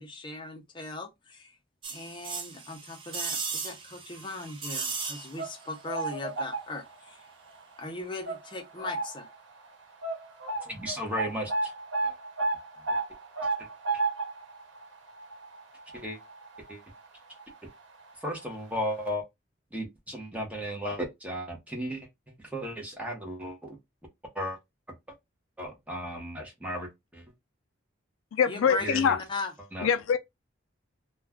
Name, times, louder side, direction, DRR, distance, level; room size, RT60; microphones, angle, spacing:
voice 1, 0.0-1.6 1.9-7.3 7.8-9.3 28.5-29.5, left 2 dB, 25° left, 0.5 m, -39 dB
sound 1, 1.8-5.6 5.9-6.0, right 5 dB, 25° right, 0.4 m, -36 dB
sound 2, 5.1-7.1 7.5-7.7 8.3-9.4 9.6-9.7 10.0-17.1 17.4-17.5 18.4-18.5 18.8-18.9, right 3 dB, 75° right, 1.1 m, -33 dB
voice 2, 10.6-11.7 12.0-12.1 12.9-13.0 15.9-16.2 16.7-16.8 18.2-19.2 19.7-22.1 22.4-23.8 24.3-24.6 25.6-27.2 28.8-29.1 29.7-29.9, equal, 5° right, 0.7 m, -35 dB
voice 3, 28.3-29.2 29.8-30.2, left 7 dB, 90° left, 0.4 m, -24 dB
2.3 x 2.2 x 3.4 m
head